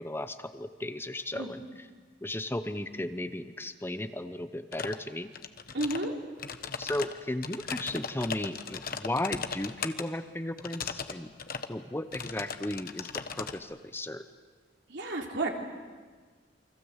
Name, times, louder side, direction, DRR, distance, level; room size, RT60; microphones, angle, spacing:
voice 1, 0.0-1.9 2.2-5.3 6.8-11.3 11.7-14.2, left 1 dB, 15° left, 10 dB, 0.8 m, -35 dB
sound 1, 4.7-5.0 5.3-6.1 6.4-10.0 10.6-11.1 11.4-11.7 12.1-13.6, left 6 dB, 55° left, 1.3 m, -37 dB
voice 2, 5.7-6.1 14.9-15.5, right 2 dB, 70° right, 1 dB, 3.6 m, -31 dB
29.0 x 24.5 x 8.2 m, 1.5 s
head